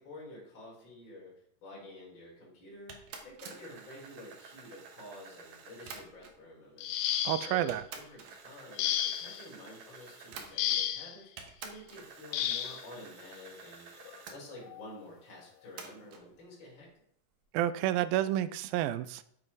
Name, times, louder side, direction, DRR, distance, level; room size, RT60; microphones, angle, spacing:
voice 1, 0.0-1.3 1.6-3.0 3.2-6.9 7.4-11.3 11.6-17.0, left 1 dB, 35° left, -4 dB, 4.1 m, -50 dB
sound 1, 2.9-6.5 7.2-7.3 7.7-11.0 11.4-14.4 15.8-16.3, right 5 dB, 60° right, 2.1 m, -49 dB
sound 2, 6.8-7.7 8.8-9.4 10.6-11.2 12.3-12.8 14.0-14.1 14.7-14.9, left 11 dB, 90° left, 2.5 m, -32 dB
voice 2, 7.3-7.8 17.5-19.2, right 13 dB, 85° right, 14 dB, 2.4 m, -30 dB
8.3 x 7.6 x 4.7 m, 0.69 s
omnidirectional pair, 4.1 m